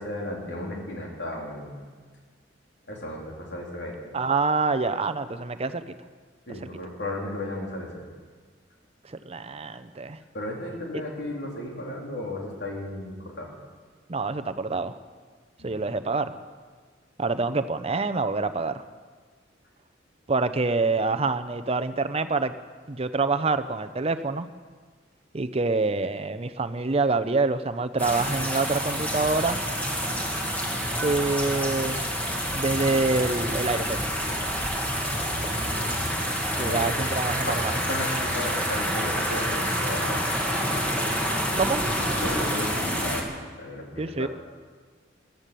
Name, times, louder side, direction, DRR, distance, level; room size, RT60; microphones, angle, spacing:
voice 1, 0.0-1.8 2.9-4.0 6.5-8.0 10.3-13.5 15.6-15.8 36.6-36.9 37.5-40.2 42.2-44.3, left 1 dB, 65° left, -1 dB, 3.5 m, -35 dB
voice 2, 4.1-5.9 6.6-6.7 9.1-10.2 14.1-14.9 15.6-16.4 17.2-18.8 20.3-22.5 22.9-24.5 25.3-29.6 31.0-32.2 32.5-34.0 36.6-37.7 41.6-41.8 44.0-44.3, right 3 dB, 30° right, 11 dB, 0.6 m, -26 dB
sound 1, 28.0-43.2, equal, 10° left, 2.0 m, -28 dB
15.0 x 13.0 x 6.9 m, 1.5 s
head